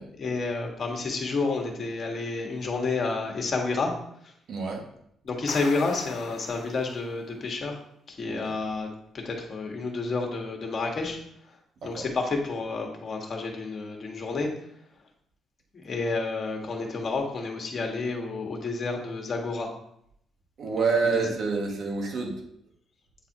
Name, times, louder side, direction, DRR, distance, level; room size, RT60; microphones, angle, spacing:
voice 1, 0.2-3.9 5.2-7.8 8.1-11.2 11.8-14.5 15.8-19.7 20.7-21.3, left 3 dB, 45° left, 1 dB, 1.6 m, -30 dB
voice 2, 4.5-4.8 8.3-8.5 11.8-12.1 20.6-22.4, right 4 dB, 65° right, -1 dB, 1.8 m, -28 dB
sound 1, 5.3-7.2, left 9 dB, 85° left, 0.4 m, -41 dB
9.0 x 4.0 x 2.9 m, 0.72 s
cardioid pair, 90°, 0 cm